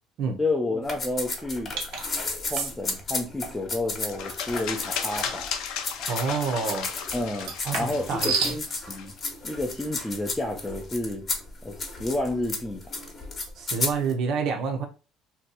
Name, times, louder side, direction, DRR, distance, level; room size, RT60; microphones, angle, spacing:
voice 1, 0.4-1.7 2.4-5.5 7.1-9.1 9.4-11.3 11.6-12.8, left 2 dB, 10° left, 0.5 m, -30 dB
sound 1, 0.9-5.5 5.8-7.3 7.6-14.1, left 3 dB, 30° left, 0.8 m, -33 dB
sound 2, 1.8-2.0 2.5-2.7 5.2-5.5 7.3-8.6, right 5 dB, 90° right, 0.8 m, -29 dB
sound 3, 4.1-9.3, left 7 dB, 70° left, 0.5 m, -35 dB
voice 2, 6.1-6.9 7.6-8.3 13.6-14.9, right 5 dB, 55° right, 0.6 m, -28 dB
2.7 x 2.2 x 3.9 m
cardioid pair, 135°, 0 cm